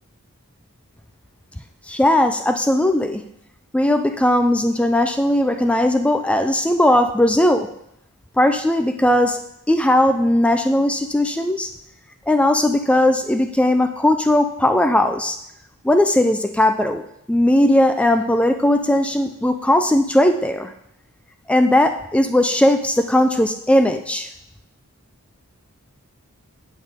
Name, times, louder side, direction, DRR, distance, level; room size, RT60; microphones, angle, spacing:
voice 1, 1.9-3.2 3.7-7.7 8.4-9.4 9.7-11.7 12.3-15.4 15.8-20.7 21.5-24.3, left 1 dB, 5° left, 7 dB, 0.3 m, -18 dB
9.1 x 8.2 x 3.6 m, 0.77 s
head